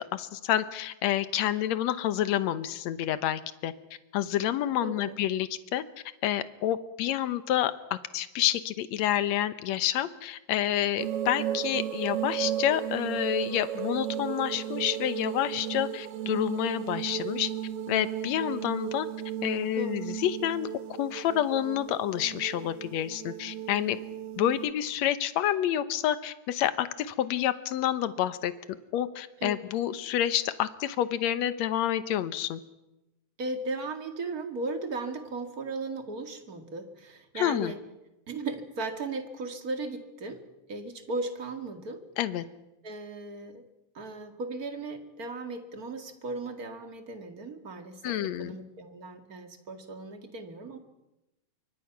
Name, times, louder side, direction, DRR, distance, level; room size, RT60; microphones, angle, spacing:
voice 1, 0.1-3.7 4.1-5.8 6.2-17.5 17.9-19.1 19.4-20.7 21.0-24.0 24.4-28.5 28.9-32.6 37.4-37.7 42.2-42.4 48.0-48.6, left 12 dB, 70° left, 13 dB, 2.1 m, -28 dB
voice 2, 4.8-5.2 19.7-20.0 29.4-29.6 33.4-37.8 38.3-40.4 40.7-42.0 42.8-43.6 43.9-50.8, right 3 dB, 30° right, 6 dB, 2.2 m, -36 dB
sound 1, 11.0-24.7, right 11 dB, 60° right, 1.8 m, -35 dB
26.5 x 24.0 x 6.0 m, 0.95 s
omnidirectional pair, 3.6 m